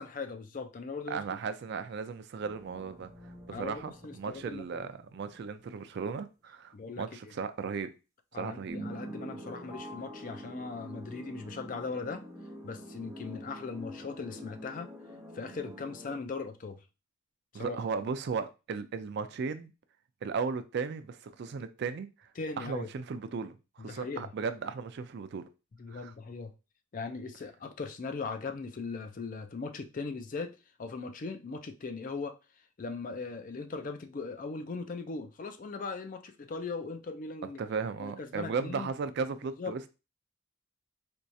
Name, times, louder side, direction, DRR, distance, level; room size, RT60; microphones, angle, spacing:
voice 1, 0.0-1.4 3.5-4.9 6.7-7.0 8.3-12.2 12.6-14.9 15.3-16.8 17.5-17.8 22.4-22.9 23.8-24.3 25.8-26.5 26.9-32.4 32.8-37.6 38.0-38.9 39.6-39.7, left 4 dB, 40° left, 0.4 m, -39 dB
voice 2, 1.1-3.1 3.5-7.9 8.3-8.8 17.5-19.7 20.2-22.3 22.6-25.5 25.9-26.1 37.6-39.9, right 5 dB, 55° right, 0.3 m, -36 dB
sound 1, 2.4-5.7 6.1-6.2 8.7-16.2, equal, 15° right, 0.8 m, -46 dB
4.4 x 2.3 x 2.6 m
head